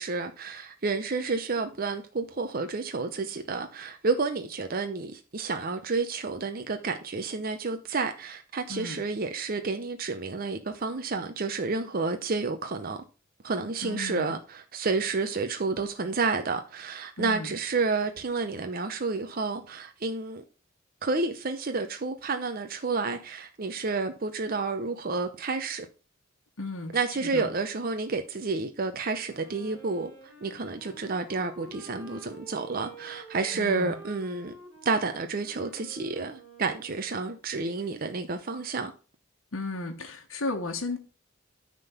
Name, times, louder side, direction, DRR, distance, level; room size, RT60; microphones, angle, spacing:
voice 1, 0.0-13.0 13.4-20.4 21.0-25.9 26.9-30.1 30.4-34.5 34.8-38.9, right 4 dB, 45° right, 0.7 m, -30 dB
voice 2, 13.8-14.3 17.2-17.5 26.6-27.5 33.5-34.0 39.5-41.0, left 2 dB, 80° left, 1.2 m, -34 dB
Wind instrument woodwind instrument, 29.2-37.5, right 3 dB, 5° right, 3.6 m, -49 dB
9.4 x 3.8 x 6.8 m
head